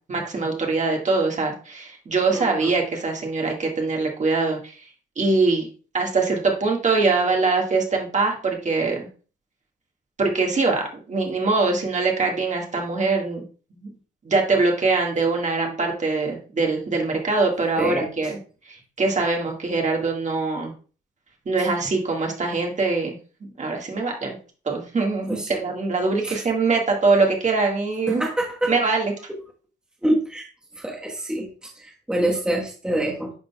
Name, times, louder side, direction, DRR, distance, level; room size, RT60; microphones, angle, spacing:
voice 1, 0.1-4.7 5.2-5.7 5.9-9.1 10.2-13.4 13.8-13.9 14.2-18.4 18.7-20.7 21.4-24.4 24.6-28.2 28.7-29.1, right 3 dB, 35° right, 0 dB, 1.8 m, -23 dB
voice 2, 2.3-2.7 17.8-18.1 25.3-25.6 26.2-26.4 28.0-28.7 29.3-29.4 30.0-30.5 30.7-33.3, right 1 dB, 5° right, -2 dB, 1.3 m, -26 dB
11.5 x 3.9 x 2.3 m, 0.38 s
cardioid pair, 90°, 20 cm